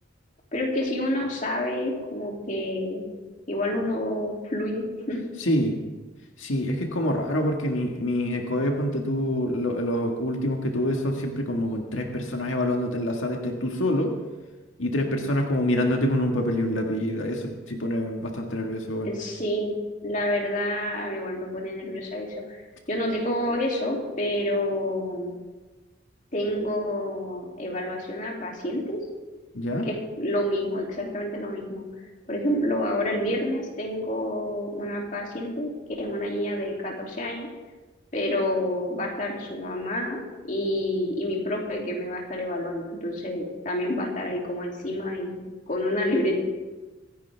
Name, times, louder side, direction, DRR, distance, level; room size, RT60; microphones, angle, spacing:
voice 1, 0.5-3.1 3.5-5.2 19.0-22.6 22.9-25.3 26.3-29.0 29.8-31.8 32.3-35.7 36.0-37.5 38.1-40.2 40.5-46.4, left 1 dB, 40° left, -1 dB, 2.8 m, -28 dB
voice 2, 5.4-5.7 6.4-14.1 14.8-19.1 29.5-29.9, left 1 dB, 90° left, 1 dB, 1.8 m, -26 dB
24.5 x 10.5 x 3.5 m, 1.2 s
head